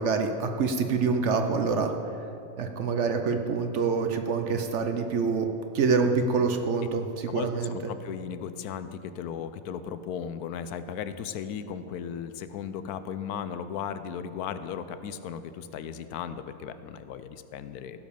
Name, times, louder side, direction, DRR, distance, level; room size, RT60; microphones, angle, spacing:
voice 1, 0.0-1.9 2.6-5.5 5.7-7.8, right 5 dB, 60° right, 6 dB, 0.9 m, -26 dB
voice 2, 7.3-18.0, left 8 dB, 85° left, 12 dB, 1.1 m, -36 dB
15.5 x 5.2 x 6.8 m, 2.8 s
omnidirectional pair, 1.6 m